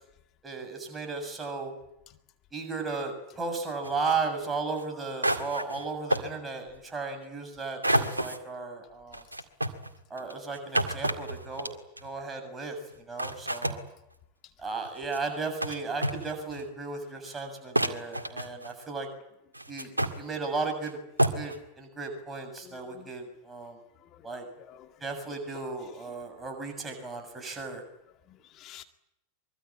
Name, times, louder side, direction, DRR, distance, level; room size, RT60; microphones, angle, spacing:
voice 1, 0.4-1.7 2.5-9.2 10.1-11.7 12.0-13.8 14.6-19.1 19.7-21.0 21.3-23.8 24.2-24.4 25.0-27.8, right 4 dB, 15° right, 4 dB, 7.2 m, -35 dB
soft impact, 3.8-4.1 4.8-4.9 5.2-5.8 6.1-6.3 7.8-8.4 9.1-12.1 12.9-13.0 13.2-13.8 14.8-15.2 15.6-15.7 16.0-16.6 17.3-17.4 17.7-18.8 19.5-20.2 20.8-20.9 21.2-21.6, right 1 dB, 85° right, 2.0 m, -29 dB
voice 2, 22.6-23.1 24.0-25.2 28.3-28.8, left 11 dB, 35° left, 7 dB, 2.1 m, -51 dB
24.0 x 23.5 x 8.8 m, 0.85 s
figure-of-eight pair, 90°, 0 cm